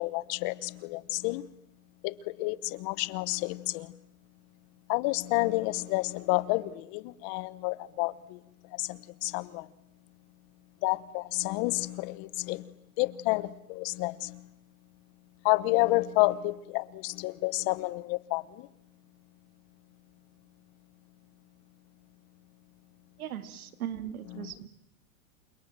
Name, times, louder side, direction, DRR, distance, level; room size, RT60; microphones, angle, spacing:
voice 1, 0.0-1.5 2.0-4.0 4.9-8.4 8.7-9.7 10.8-14.5 15.4-18.7 24.4-24.5, left 21 dB, 40° left, 1.1 m, -30 dB
voice 2, 23.2-24.7, right 10 dB, 80° right, 2.7 m, -38 dB
29.0 x 26.5 x 7.6 m
supercardioid pair, 150°, 43 cm